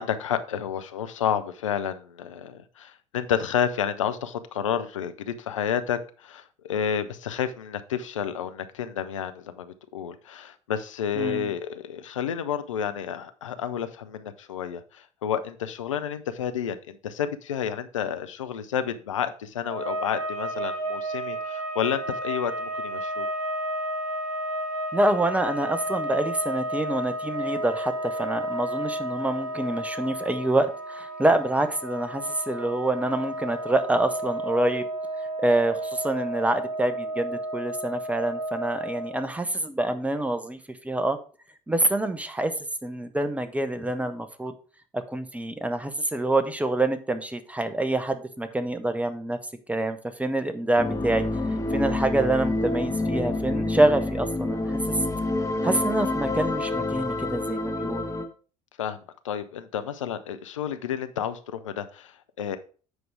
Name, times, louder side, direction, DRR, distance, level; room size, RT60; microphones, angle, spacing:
voice 1, 0.0-23.3 58.8-59.0 59.2-62.6, left 8 dB, 75° left, 10 dB, 0.6 m, -30 dB
voice 2, 11.2-11.5 24.9-34.9 35.4-41.2 41.7-42.5 42.8-44.5 44.9-49.4 49.7-51.2 51.7-55.0 55.6-58.1, right 1 dB, 10° right, 10 dB, 1.0 m, -26 dB
sound 1, 19.6-39.3, right 1 dB, 65° right, 2.5 m, -32 dB
sound 2, 50.8-58.2, left 2 dB, 20° left, 1.2 m, -28 dB
8.1 x 4.7 x 4.7 m, 0.39 s
figure-of-eight pair, 60°, 16 cm